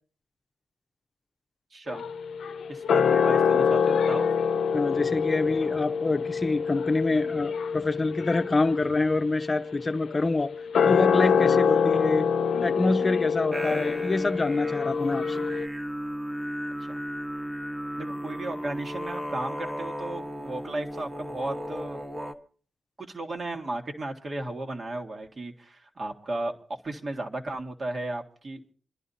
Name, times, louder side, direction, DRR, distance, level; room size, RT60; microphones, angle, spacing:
voice 1, 1.7-2.0 2.7-4.3 4.9-5.1 11.7-11.9 16.8-17.0 18.0-22.0 23.0-28.6, right 2 dB, 50° right, 1.8 m, -35 dB
sound 1, 1.9-15.7, left 6 dB, 80° left, 0.6 m, -25 dB
voice 2, 4.7-10.5 10.8-12.3 12.6-15.5, left 3 dB, 35° left, 0.7 m, -26 dB
sound 2, 13.5-22.3, equal, 20° right, 1.3 m, -35 dB
28.0 x 11.0 x 2.8 m
cardioid pair, 50°, 0 cm